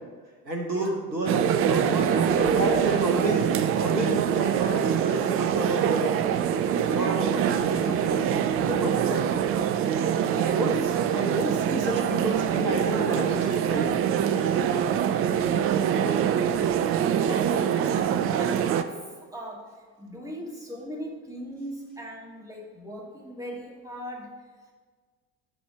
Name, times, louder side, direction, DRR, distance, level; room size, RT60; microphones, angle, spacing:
voice 1, 0.4-6.2 6.7-9.4 10.3-13.9 15.9-16.2, right 1 dB, 90° right, 1 dB, 1.1 m, -30 dB
sound 1, 1.3-18.8, right 9 dB, 30° right, 0.4 m, -24 dB
voice 2, 10.5-10.8 14.6-14.9 15.7-16.3 17.2-19.7 20.0-24.4, equal, 5° right, -2 dB, 2.1 m, -39 dB
11.5 x 4.3 x 4.6 m, 1.5 s
figure-of-eight pair, 65°, 49 cm